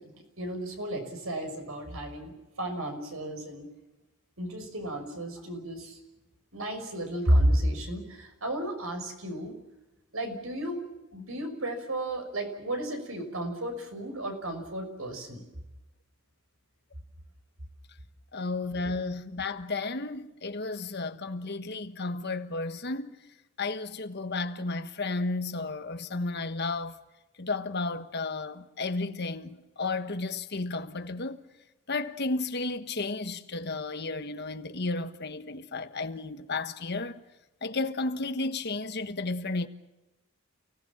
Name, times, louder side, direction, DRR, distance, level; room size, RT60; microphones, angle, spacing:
voice 1, 0.4-3.6 4.4-6.0 6.5-9.5 10.1-10.8 11.1-15.4, right 1 dB, 85° right, 6.1 m, -32 dB
voice 2, 18.3-23.1 23.6-27.0 27.4-31.4 31.9-37.2 37.6-39.7, left 3 dB, 55° left, 1.4 m, -33 dB
29.5 x 18.0 x 7.3 m
head